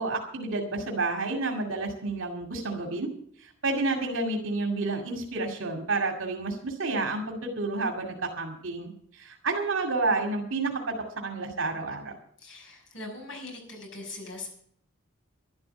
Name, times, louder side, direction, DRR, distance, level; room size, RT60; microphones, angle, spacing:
voice 1, 0.0-3.1 3.4-12.2, right 3 dB, 85° right, 2 dB, 2.3 m, -30 dB
voice 2, 12.4-14.5, left 2 dB, 75° left, 1 dB, 6.1 m, -41 dB
12.0 x 11.5 x 7.0 m, 0.64 s
head